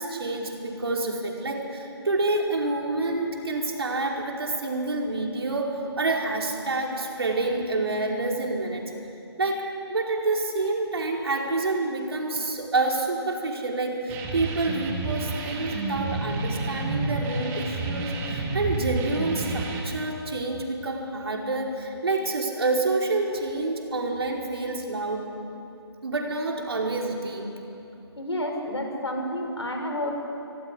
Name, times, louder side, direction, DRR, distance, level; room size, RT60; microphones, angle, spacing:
voice 1, 0.0-8.8 9.4-9.6 9.9-25.2 26.0-27.5, right 2 dB, 65° right, 0 dB, 5.0 m, -28 dB
sound 1, 14.1-19.8, right 3 dB, 20° right, 2.8 m, -30 dB
voice 2, 28.2-30.1, left 1 dB, 85° left, 2 dB, 6.0 m, -30 dB
25.0 x 15.0 x 9.9 m, 2.8 s
figure-of-eight pair, 150°, 14 cm